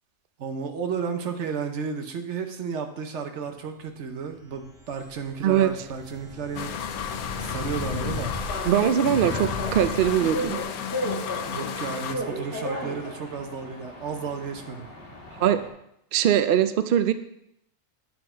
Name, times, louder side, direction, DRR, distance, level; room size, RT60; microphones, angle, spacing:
voice 1, 0.4-6.8 7.1-8.6 11.3-14.9, right 6 dB, 55° right, 6 dB, 1.1 m, -33 dB
sound 1, 4.3-10.6, left 2 dB, ahead, 3.7 m, -36 dB
sound 2, 6.6-12.2, left 8 dB, 90° left, 1.1 m, -33 dB
sound 3, 8.3-15.7, equal, 45° left, 1.5 m, -35 dB
voice 2, 8.7-10.6 15.4-15.6 16.1-17.1, right 10 dB, 90° right, 10 dB, 0.4 m, -21 dB
9.4 x 5.8 x 4.4 m, 0.77 s
omnidirectional pair, 1.5 m